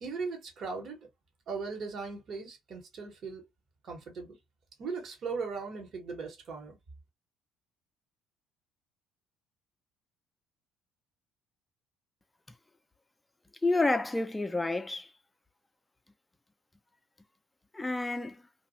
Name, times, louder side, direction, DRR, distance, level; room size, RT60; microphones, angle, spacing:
voice 1, 0.0-1.1 1.5-3.4 3.8-4.4 4.8-6.8, right 4 dB, 50° right, 1.3 m, -38 dB
voice 2, 13.6-15.1 17.7-18.4, left 2 dB, 15° left, 0.5 m, -29 dB
2.6 x 2.4 x 2.6 m
figure-of-eight pair, 55°, 0 cm